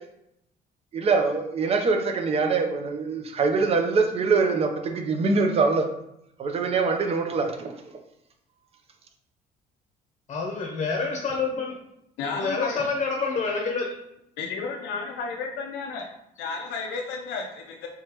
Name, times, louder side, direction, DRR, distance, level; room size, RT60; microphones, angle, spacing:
voice 1, 0.9-5.9 6.4-7.7, right 4 dB, 35° right, 4 dB, 0.6 m, -23 dB
voice 2, 10.3-11.8 12.3-13.9, left 4 dB, 35° left, 0 dB, 0.8 m, -27 dB
voice 3, 12.2-12.8 14.4-16.1 16.4-17.9, left 4 dB, 90° left, 1 dB, 0.5 m, -32 dB
3.8 x 3.1 x 2.9 m, 0.80 s
cardioid pair, 110°, 17 cm